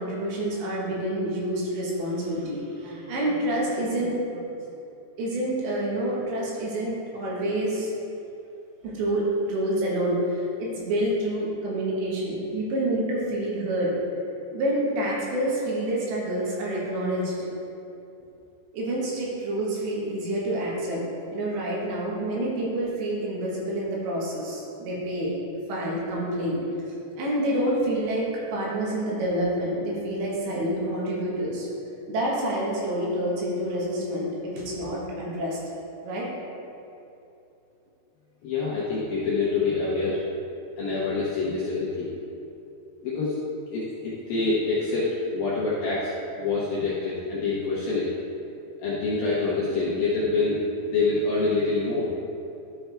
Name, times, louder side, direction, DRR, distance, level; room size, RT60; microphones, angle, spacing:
voice 1, 0.0-4.6 5.2-7.9 8.8-13.9 14.5-17.5 18.7-21.0 21.3-25.3 25.7-26.6 27.2-31.7 32.1-35.6 36.0-36.3, right 1 dB, 70° right, -5 dB, 3.5 m, -28 dB
voice 2, 38.4-40.2 40.8-42.1 43.0-43.4 43.7-48.1 48.8-50.6 50.9-52.1, left 3 dB, 75° left, -7 dB, 2.2 m, -26 dB
12.5 x 5.8 x 3.4 m, 2.8 s
omnidirectional pair, 5.5 m